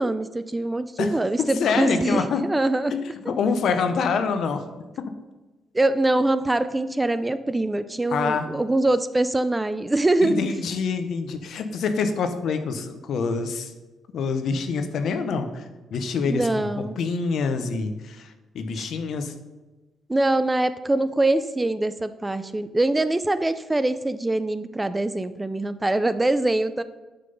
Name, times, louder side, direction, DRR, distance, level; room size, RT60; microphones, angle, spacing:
voice 1, 0.0-2.9 5.7-10.6 16.3-17.0 18.8-18.9 20.1-26.8, right 2 dB, 15° right, 13 dB, 0.3 m, -23 dB
voice 2, 1.0-2.4 2.9-4.6 8.1-8.5 10.2-13.7 14.1-15.6 15.9-19.3, left 5 dB, 70° left, 8 dB, 0.7 m, -26 dB
6.7 x 3.8 x 5.2 m, 1.1 s
cardioid pair, 90°, 0 cm